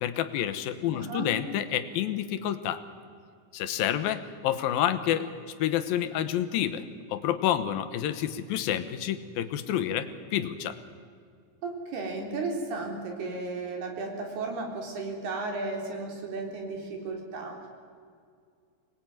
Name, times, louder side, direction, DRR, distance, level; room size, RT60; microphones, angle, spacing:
voice 1, 0.0-2.8 3.5-5.3 5.6-6.8 7.1-10.8, left 11 dB, 75° left, 11 dB, 2.8 m, -29 dB
voice 2, 0.9-1.3 11.6-17.7, right 3 dB, 90° right, 2 dB, 5.7 m, -34 dB
25.0 x 20.0 x 9.3 m, 2.2 s
omnidirectional pair, 4.4 m